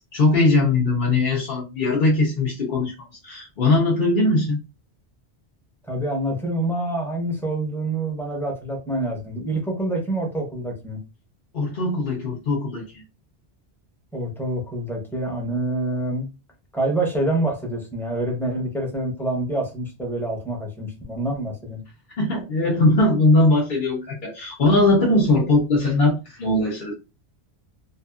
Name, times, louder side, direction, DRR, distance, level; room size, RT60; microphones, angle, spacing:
voice 1, 0.1-2.9 3.2-4.6 11.5-13.0 22.2-26.9, left 2 dB, 55° left, -4 dB, 0.8 m, -20 dB
voice 2, 5.9-11.0 14.1-16.3 16.7-21.8, right 1 dB, ahead, -1 dB, 0.7 m, -26 dB
2.7 x 2.5 x 2.3 m, 0.28 s
omnidirectional pair, 1.1 m